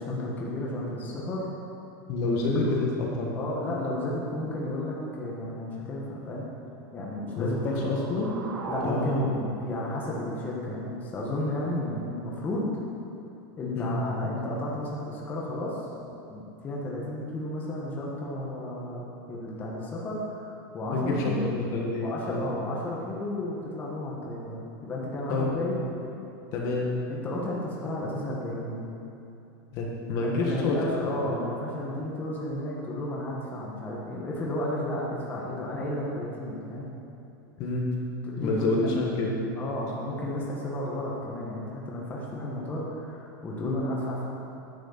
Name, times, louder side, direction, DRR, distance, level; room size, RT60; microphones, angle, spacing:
voice 1, 0.0-1.5 2.2-2.4 2.7-2.8 3.4-6.5 6.9-7.7 8.7-12.7 13.6-15.9 16.3-21.5 22.0-25.8 27.1-28.8 30.2-36.9 38.2-38.9 39.6-44.3, left 1 dB, 15° left, -4 dB, 1.4 m, -33 dB
voice 2, 2.1-3.4 7.4-8.3 8.8-9.2 13.7-14.0 20.9-22.5 25.3-25.7 26.5-26.9 29.7-31.3 37.6-37.8 38.4-39.3 43.6-43.9, left 2 dB, 35° left, -2 dB, 1.4 m, -28 dB
sound 1, 7.0-11.0, right 2 dB, 85° right, 1.9 m, -40 dB
10.5 x 6.3 x 8.0 m, 2.7 s
supercardioid pair, 180°, 11 cm